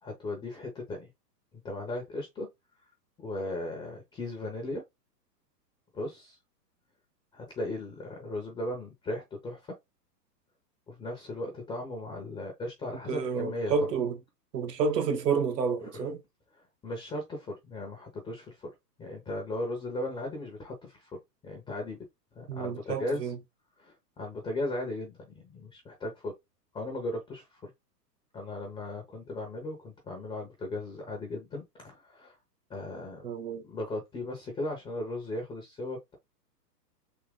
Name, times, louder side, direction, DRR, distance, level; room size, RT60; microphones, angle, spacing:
voice 1, 0.0-1.1 1.6-2.5 3.2-4.8 5.9-6.4 7.3-9.7 10.9-13.7 15.8-16.1 16.8-18.7 19.0-21.2 21.4-22.0 22.3-23.2 23.8-26.3 26.7-27.7 28.3-32.4 32.7-33.3 33.6-36.1, left 1 dB, 10° left, 0.5 m, -37 dB
voice 2, 13.1-14.2 14.5-16.2 22.5-23.4 33.2-33.6, right 5 dB, 75° right, 1.2 m, -29 dB
3.6 x 2.8 x 3.4 m
hypercardioid pair, 125°, 49 cm